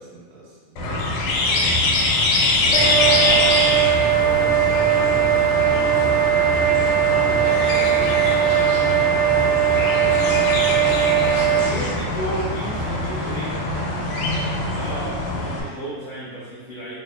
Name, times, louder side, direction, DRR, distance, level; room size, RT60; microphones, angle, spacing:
voice 1, 0.0-2.0 2.6-3.3 4.3-9.3 10.1-10.6 11.1-11.4, right 2 dB, 75° right, -7 dB, 1.8 m, -40 dB
sound 1, 0.8-15.6, left 2 dB, 85° left, 2.1 m, -24 dB
sound 2, 2.7-11.6, right 9 dB, 60° right, 1.8 m, -19 dB
voice 2, 3.1-3.5 11.4-13.7 14.7-17.0, right 1 dB, 70° left, -9 dB, 1.5 m, -32 dB
sound 3, 6.9-15.0, equal, 35° right, 1.3 m, -36 dB
4.9 x 2.7 x 2.2 m, 1.5 s
omnidirectional pair, 3.6 m